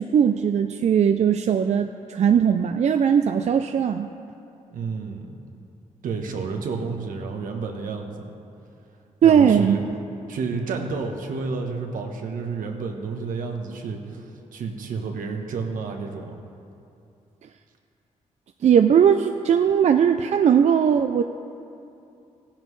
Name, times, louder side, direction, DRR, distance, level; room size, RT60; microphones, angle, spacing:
voice 1, 0.0-4.1 9.2-9.8 18.6-21.2, right 8 dB, 55° right, 7 dB, 0.4 m, -19 dB
voice 2, 4.7-5.3 6.0-8.3 9.2-9.8 10.3-14.2 14.5-16.4, right 4 dB, 80° right, 3 dB, 1.2 m, -30 dB
16.0 x 10.5 x 3.2 m, 2.6 s
cardioid pair, 65°, 14 cm